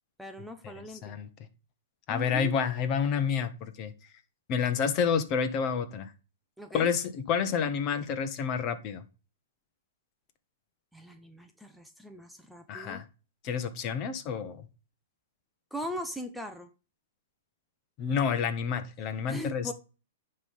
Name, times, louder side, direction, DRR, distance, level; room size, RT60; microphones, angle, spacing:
voice 1, 0.2-1.1 2.1-2.5 6.6-6.9 10.9-13.0 15.7-16.7 19.3-19.7, equal, ahead, 5 dB, 0.7 m, -40 dB
voice 2, 2.1-3.9 4.5-6.1 6.7-9.0 12.7-13.0 13.4-14.7 18.0-19.7, left 7 dB, 35° left, 10 dB, 1.1 m, -29 dB
9.8 x 3.3 x 5.4 m, 0.34 s
hypercardioid pair, 130°, 0 cm